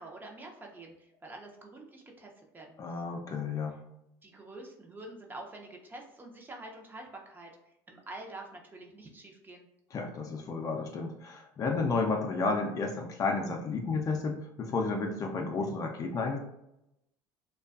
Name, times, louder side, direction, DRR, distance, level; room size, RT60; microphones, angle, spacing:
voice 1, 0.0-2.9 4.2-7.5 7.9-9.7, right 2 dB, 20° right, 1 dB, 0.6 m, -47 dB
voice 2, 2.8-3.8 9.9-16.4, left 3 dB, 40° left, 2 dB, 0.5 m, -32 dB
2.5 x 2.3 x 2.4 m, 0.84 s
supercardioid pair, 95°, 9 cm